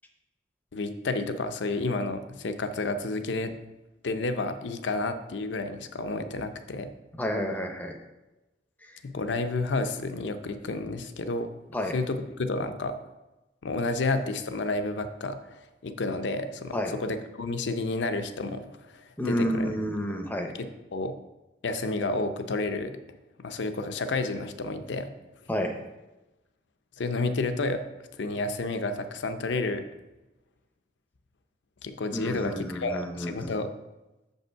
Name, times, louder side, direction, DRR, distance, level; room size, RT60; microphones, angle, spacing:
voice 1, 0.7-3.5 4.0-6.9 9.0-11.5 11.9-12.9 13.6-19.7 20.6-21.1 21.6-23.0 23.4-25.1 27.0-27.8 28.2-29.8 31.8-33.7, left 3 dB, 80° left, 9 dB, 0.6 m, -30 dB
voice 2, 7.2-8.0 8.8-9.0 11.7-11.9 16.7-16.9 19.2-20.5 25.5-25.7 32.1-33.5, equal, 10° left, 3 dB, 0.6 m, -30 dB
6.8 x 5.4 x 4.5 m, 1.0 s
head